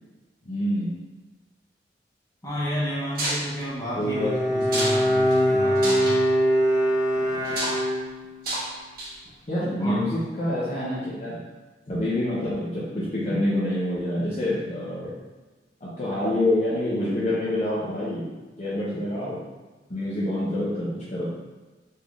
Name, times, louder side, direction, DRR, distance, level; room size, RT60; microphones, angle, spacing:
voice 1, 0.5-1.0 3.9-4.3 9.5-11.4 11.9-15.1 15.8-18.3 18.6-19.4 19.9-21.3, left 1 dB, 40° left, -8 dB, 0.7 m, -27 dB
voice 2, 2.4-6.2 9.8-10.1 11.9-12.0, equal, 20° left, -7 dB, 1.0 m, -31 dB
sound 1, 3.1-3.4 4.6-5.0 5.3-5.4 5.8-6.2 7.4-7.8 8.4-8.7 9.0-9.3, right 1 dB, 55° right, 1.2 m, -29 dB
Bowed string instrument, 4.0-8.4, equal, 20° right, 0.7 m, -22 dB
4.2 x 3.5 x 2.4 m, 1.2 s
head